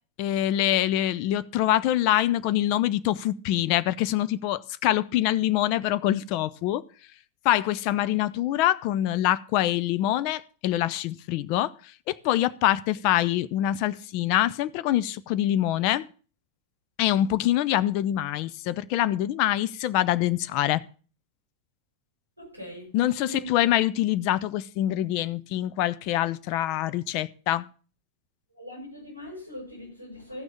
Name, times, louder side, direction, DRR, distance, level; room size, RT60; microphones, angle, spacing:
voice 1, 0.2-6.8 7.4-11.7 12.1-16.1 17.0-20.8 22.9-27.7, left 13 dB, 45° left, 0.7 m, -25 dB
voice 2, 22.4-22.9 23.2-23.5 28.5-30.4, equal, 90° left, 7.8 m, -41 dB
14.5 x 6.2 x 7.1 m
figure-of-eight pair, 90°, 0 cm